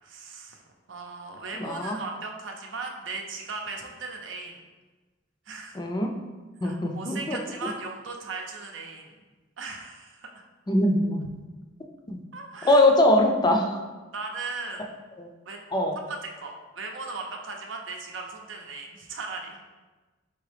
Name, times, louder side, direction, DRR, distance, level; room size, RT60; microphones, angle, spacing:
voice 1, 0.0-0.6 0.9-4.6 5.5-5.8 6.6-9.2 9.6-10.4 12.3-12.8 14.1-14.8 15.5-15.7 16.1-19.6, right 3 dB, 85° right, 1 dB, 0.6 m, -37 dB
voice 2, 1.5-2.0 5.7-6.1 6.6-7.4 10.7-11.3 12.1-12.2 12.6-13.8 15.2-15.3 15.7-16.0, left 1 dB, 25° left, 3 dB, 0.4 m, -22 dB
4.7 x 3.1 x 3.3 m, 1.2 s
head